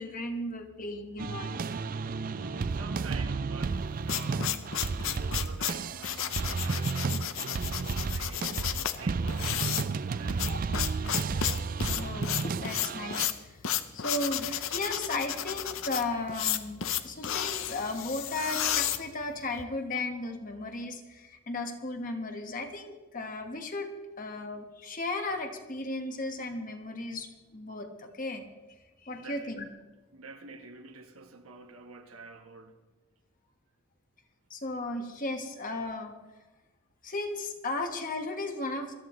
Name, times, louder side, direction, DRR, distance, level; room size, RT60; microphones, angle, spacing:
voice 1, 0.0-1.6 10.5-10.6 11.3-11.4 11.9-13.3 13.9-23.9 24.2-28.4 29.0-29.7 34.5-36.1 37.0-38.9, left 2 dB, 35° left, 1.4 m, -35 dB
sound 1, 1.2-13.3, right 4 dB, 40° right, 0.3 m, -32 dB
voice 2, 2.3-4.7 5.0-10.6 29.1-29.5 30.1-32.8, right 3 dB, 70° right, 1.3 m, -48 dB
sound 2, 3.7-19.6, left 10 dB, 60° left, 0.7 m, -33 dB
21.5 x 13.5 x 3.2 m
head